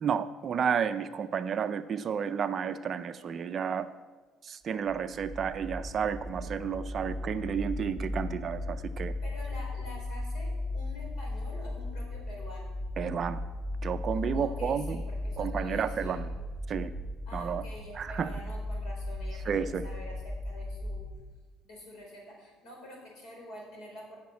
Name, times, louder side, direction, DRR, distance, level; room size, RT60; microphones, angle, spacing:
voice 1, 0.0-3.9 4.4-9.1 13.0-13.4 13.8-15.0 15.4-16.3 16.7-16.9 17.3-17.6 18.0-18.3 19.5-19.8, right 7 dB, 35° right, 10 dB, 0.4 m, -31 dB
sound 1, 4.9-21.2, left 2 dB, 10° left, 1.8 m, -37 dB
voice 2, 9.2-12.7 14.3-16.2 17.3-21.1 21.6-24.2, equal, 60° left, 0 dB, 4.2 m, -47 dB
10.5 x 6.5 x 8.4 m, 1.3 s
cardioid pair, 155°, 0 cm